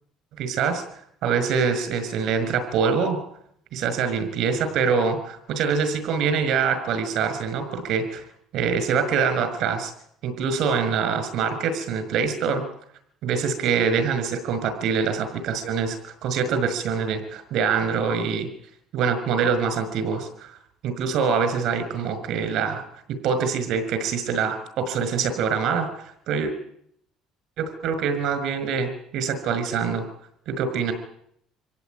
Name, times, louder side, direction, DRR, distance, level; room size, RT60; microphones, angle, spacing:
voice 1, 0.4-0.8 1.2-3.2 3.7-8.2 8.5-9.9 10.2-12.6 13.2-18.5 18.9-20.6 20.8-22.8 23.2-26.5 27.6-30.0 30.5-30.9, right 6 dB, 60° right, 10 dB, 5.6 m, -24 dB
26.0 x 16.5 x 9.3 m, 0.70 s
cardioid pair, 155°, 0 cm